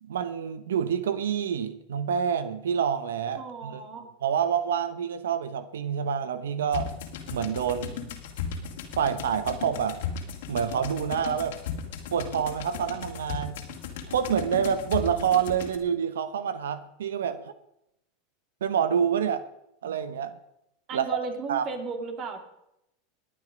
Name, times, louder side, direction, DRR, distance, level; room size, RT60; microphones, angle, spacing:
voice 1, 0.0-3.8 4.2-6.9 7.3-8.0 9.0-10.0 10.5-11.6 12.1-13.6 14.1-17.5 18.6-19.4 19.8-20.4 20.9-21.2 21.5-21.7, right 8 dB, 85° right, 13 dB, 0.8 m, -27 dB
voice 2, 3.4-4.1 20.9-22.4, right 4 dB, 40° right, 6 dB, 2.8 m, -35 dB
sound 1, 6.7-15.8, left 7 dB, 75° left, 2.5 m, -36 dB
21.5 x 8.8 x 5.2 m, 0.83 s
hypercardioid pair, 105°, 0 cm